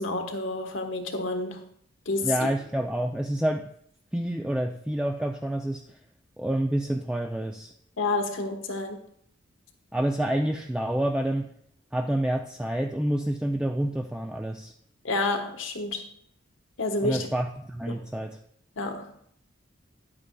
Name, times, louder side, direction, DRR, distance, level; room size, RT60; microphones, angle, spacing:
voice 1, 0.0-1.7 2.1-2.5 8.0-9.0 15.0-16.0 16.8-17.3 17.9-18.0 18.8-19.1, left 2 dB, 70° left, 4 dB, 1.2 m, -29 dB
voice 2, 2.2-3.7 4.1-6.0 6.4-7.7 9.9-11.5 11.9-14.7 17.0-18.4, right 1 dB, 5° right, 2 dB, 0.3 m, -28 dB
10.5 x 8.7 x 2.2 m, 0.66 s
head